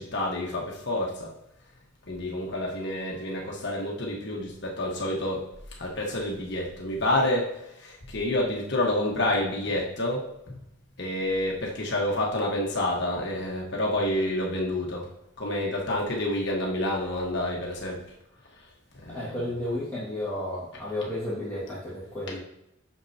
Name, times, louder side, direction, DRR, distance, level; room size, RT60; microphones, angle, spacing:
voice 1, 0.0-1.3 2.1-10.6 11.0-15.1 15.4-18.1 18.6-18.7 18.9-19.5 22.3-22.4, left 1 dB, 55° left, -2 dB, 1.3 m, -29 dB
voice 2, 19.1-22.4, left 1 dB, 10° left, -11 dB, 2.0 m, -32 dB
9.6 x 6.6 x 2.9 m, 0.81 s
head